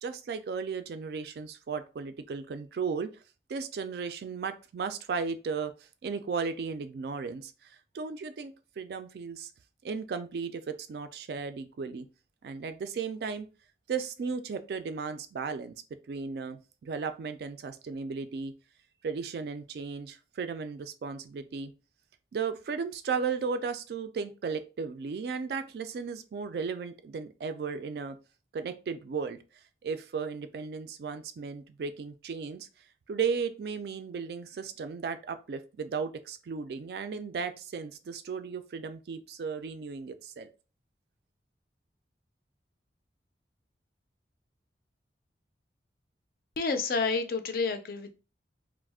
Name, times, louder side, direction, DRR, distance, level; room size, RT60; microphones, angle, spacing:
voice 1, 0.0-3.1 3.5-5.7 6.0-9.5 9.8-12.1 12.4-13.5 13.9-15.7 16.1-18.5 19.0-21.7 22.3-28.2 28.5-29.4 29.8-32.7 33.1-40.5, right 5 dB, 60° right, 9 dB, 0.3 m, -35 dB
voice 2, 46.6-48.1, left 4 dB, 55° left, 7 dB, 0.4 m, -29 dB
2.4 x 2.0 x 3.4 m, 0.33 s
head